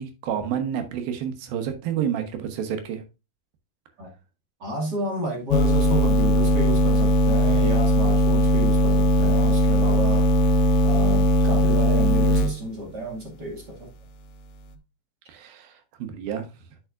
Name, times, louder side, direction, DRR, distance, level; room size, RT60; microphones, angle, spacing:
voice 1, 0.0-3.0 9.2-9.3 15.3-16.5, right 9 dB, 80° right, 2.9 m, -29 dB
voice 2, 4.6-10.3 10.8-13.9, equal, 35° right, 1.8 m, -31 dB
sound 1, 5.5-12.5, equal, 80° left, 2.2 m, -19 dB
9.0 x 6.2 x 2.4 m
omnidirectional pair, 4.2 m